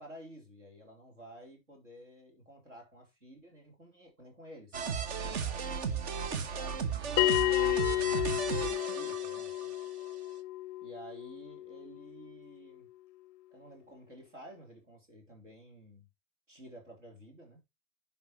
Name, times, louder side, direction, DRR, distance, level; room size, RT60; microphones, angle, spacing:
voice 1, 0.0-7.6 8.1-9.7 10.8-12.9 13.5-16.1 16.5-17.6, equal, 75° right, 3.4 m, -52 dB
sound 1, 4.7-9.9, right 6 dB, 60° right, 1.2 m, -35 dB
Bell, 7.2-12.2, left 16 dB, 30° left, 0.4 m, -31 dB
10.5 x 5.5 x 3.0 m
figure-of-eight pair, 80°, 37 cm